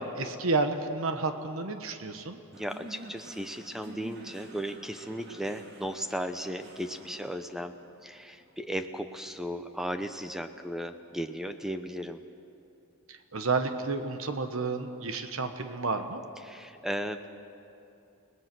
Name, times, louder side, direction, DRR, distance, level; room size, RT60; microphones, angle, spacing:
voice 1, 0.0-2.4 13.1-16.2, right 3 dB, 70° right, 7 dB, 1.2 m, -31 dB
voice 2, 2.5-7.8 8.0-12.2 16.4-17.3, equal, ahead, 8 dB, 0.7 m, -36 dB
sound 1, 2.5-11.0, right 2 dB, 45° right, 2.0 m, -50 dB
30.0 x 19.0 x 6.1 m, 2.7 s
head